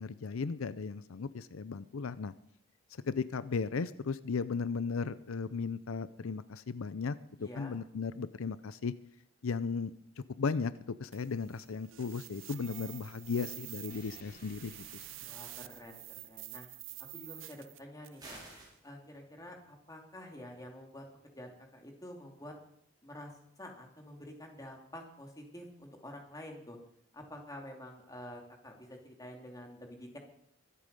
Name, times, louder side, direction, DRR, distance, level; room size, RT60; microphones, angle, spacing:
voice 1, 0.0-2.3 3.0-8.9 9.4-9.9 10.4-10.7 11.0-15.0, left 5 dB, 85° left, 15 dB, 0.6 m, -36 dB
voice 2, 7.4-7.8 15.2-16.7 17.0-18.4 18.8-22.5 23.0-26.8 27.1-30.2, left 1 dB, 20° left, 2 dB, 2.7 m, -48 dB
sound 1, 11.1-18.3, right 16 dB, 70° right, 0.7 m, -48 dB
sound 2, 11.9-16.7, left 1 dB, 45° left, 3.3 m, -60 dB
sound 3, 18.2-18.8, right 2 dB, 20° right, 4.9 m, -48 dB
23.5 x 8.5 x 5.4 m, 0.72 s
head